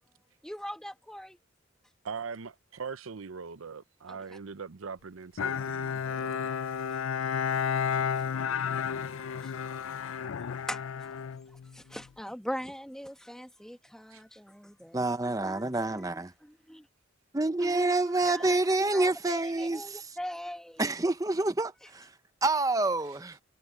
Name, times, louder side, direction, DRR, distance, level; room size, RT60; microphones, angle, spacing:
voice 1, 0.4-1.4 4.1-4.4 8.2-8.3 8.9-11.1 11.5-15.0 15.4-16.9 17.6-20.9, equal, 5° left, 1.8 m, -42 dB
voice 2, 2.0-6.5 14.1-14.2, right 5 dB, 85° right, 0.7 m, -41 dB
Bowed string instrument, 5.4-12.1, left 7 dB, 80° left, 0.4 m, -32 dB
voice 3, 14.9-16.3 17.3-20.1 20.8-22.1 22.4-23.4, right 2 dB, 15° right, 0.6 m, -28 dB
head